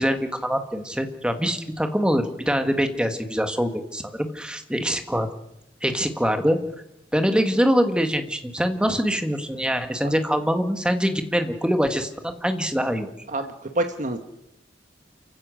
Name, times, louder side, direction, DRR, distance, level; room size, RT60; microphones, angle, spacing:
voice 1, 0.0-5.3 5.8-6.6 7.1-13.1, equal, 5° right, 7 dB, 1.9 m, -24 dB
voice 2, 13.3-14.2, right 2 dB, 45° right, 6 dB, 1.5 m, -27 dB
28.5 x 16.0 x 6.5 m, 0.85 s
head